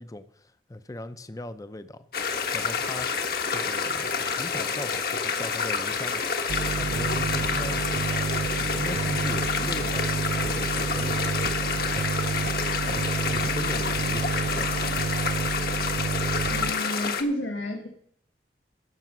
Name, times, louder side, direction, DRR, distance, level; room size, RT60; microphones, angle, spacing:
voice 1, 0.0-2.1 2.5-3.1 3.5-6.2 6.8-12.1 12.8-13.0 13.3-14.9, left 1 dB, 20° left, 11 dB, 0.6 m, -39 dB
sound 1, 2.1-17.2, left 5 dB, 55° left, 1.2 m, -28 dB
sound 2, 6.5-16.7, right 5 dB, 50° right, 0.3 m, -30 dB
voice 2, 16.5-17.9, equal, 75° left, 1 dB, 1.4 m, -30 dB
15.0 x 6.3 x 6.1 m, 0.70 s
head